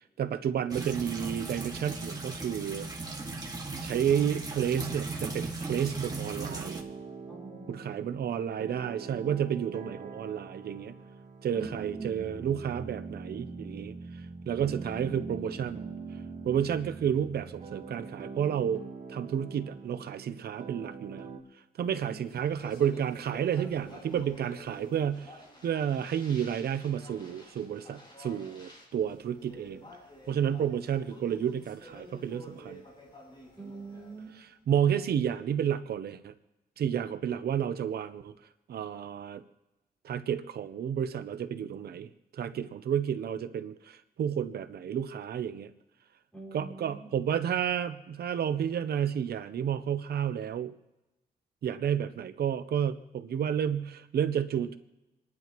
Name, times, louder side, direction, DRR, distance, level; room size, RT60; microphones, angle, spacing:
voice 1, 0.2-2.9 3.8-6.8 7.7-10.9 11.4-13.9 14.5-15.8 16.4-18.8 19.1-21.3 21.8-29.8 30.3-32.8 34.7-36.3 36.8-38.3 38.7-39.4 40.0-42.1 42.3-45.7 46.5-50.7 51.6-54.8, right 9 dB, 90° right, 11 dB, 0.7 m, -31 dB
sound 1, 0.7-6.8, right 3 dB, 25° right, 1.9 m, -37 dB
sound 2, 6.5-21.4, right 4 dB, 55° right, 1.6 m, -43 dB
voice 2, 7.3-8.1 11.5-12.3 22.1-22.2 33.5-34.4 46.3-47.1, right 3 dB, 5° left, -2 dB, 5.6 m, -45 dB
Speech, 22.0-34.4, left 1 dB, 30° left, 6.7 m, -51 dB
28.0 x 11.0 x 3.0 m, 1.0 s
wide cardioid pair, 105°, 16 cm